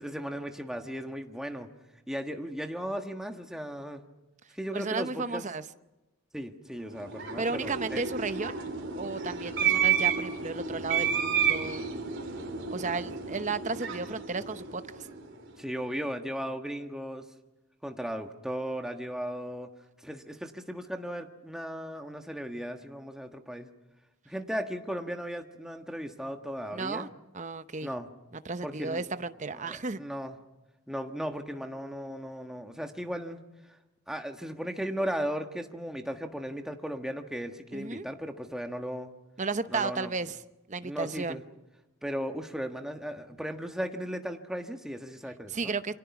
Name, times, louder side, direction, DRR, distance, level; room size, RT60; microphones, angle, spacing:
voice 1, 0.0-1.7 2.1-4.0 4.5-5.4 6.3-8.0 15.6-17.3 17.8-19.7 20.0-23.7 24.3-27.1 27.8-28.1 28.6-29.0 29.5-30.3 30.9-33.4 34.1-39.1 39.7-40.1 40.8-41.4 42.0-45.7, equal, ahead, 1.4 m, -36 dB
voice 2, 4.7-5.6 7.4-8.5 8.9-11.8 12.7-15.1 26.7-27.1 27.3-27.9 28.4-30.0 37.7-38.1 39.4-40.4 40.7-41.4 45.5-45.9, right 4 dB, 35° right, 0.8 m, -33 dB
sound 1, 6.9-15.4, right 7 dB, 55° right, 3.9 m, -31 dB
28.5 x 24.5 x 6.0 m
head